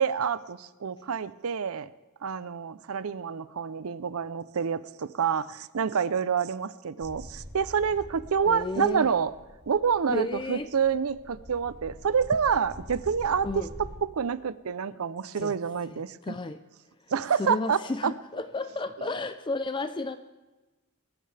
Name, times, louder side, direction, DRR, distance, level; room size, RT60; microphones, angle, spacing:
voice 1, 0.0-1.9 2.2-9.3 9.7-13.5 13.8-16.3 17.1-18.1 19.0-19.1, right 6 dB, 75° right, 16 dB, 0.5 m, -28 dB
sound 1, 7.0-14.0, equal, 25° right, 6.6 m, -46 dB
voice 2, 8.5-9.1 10.1-10.7 13.4-13.7 15.3-15.6 15.9-16.6 17.4-20.2, left 2 dB, 20° left, 10 dB, 0.4 m, -33 dB
23.5 x 13.5 x 3.3 m, 1.2 s
head